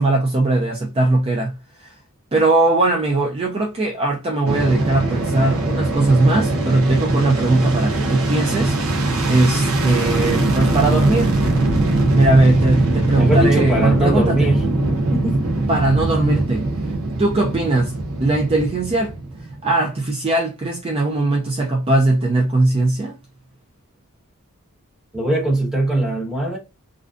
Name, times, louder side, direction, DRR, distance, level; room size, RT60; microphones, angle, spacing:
voice 1, 0.0-1.5 1.8-1.9 2.3-11.3 12.1-14.6 15.7-16.6 17.2-17.9 18.2-19.1 19.6-23.1, right 2 dB, 25° right, 0.4 m, -19 dB
Fixed-wing aircraft airplane, 4.5-19.6, right 2 dB, 70° right, 0.6 m, -21 dB
voice 2, 13.1-14.7 15.1-15.4 25.1-26.6, right 1 dB, 5° right, 1.0 m, -20 dB
2.4 x 2.2 x 2.4 m
head